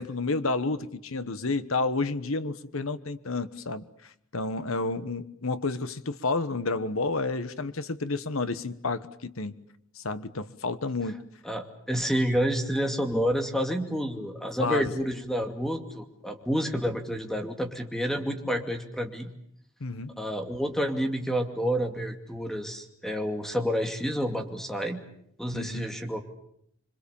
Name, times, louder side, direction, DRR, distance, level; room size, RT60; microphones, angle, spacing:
voice 1, 0.0-3.8 4.3-9.5 9.9-11.2 14.6-14.9 19.8-20.2 25.5-25.9, left 3 dB, 70° left, 12 dB, 1.3 m, -30 dB
voice 2, 11.4-19.3 20.2-25.0 25.4-26.2, equal, ahead, 4 dB, 2.5 m, -29 dB
26.5 x 25.0 x 7.2 m, 0.72 s
head